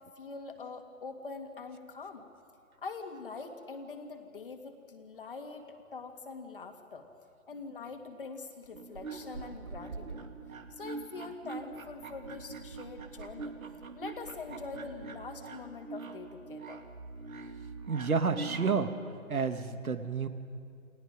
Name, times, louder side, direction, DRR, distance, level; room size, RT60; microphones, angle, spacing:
voice 1, 0.2-2.3 2.8-7.1 7.5-10.3 10.7-13.6 14.0-16.8, left 4 dB, 40° left, 5 dB, 2.1 m, -44 dB
sound 1, 8.6-18.9, right 4 dB, 75° right, 2.1 m, -44 dB
voice 2, 17.9-18.9 19.3-20.3, right 5 dB, 90° right, 9 dB, 1.8 m, -30 dB
29.5 x 19.0 x 5.1 m, 2.4 s
hypercardioid pair, 170°, 42 cm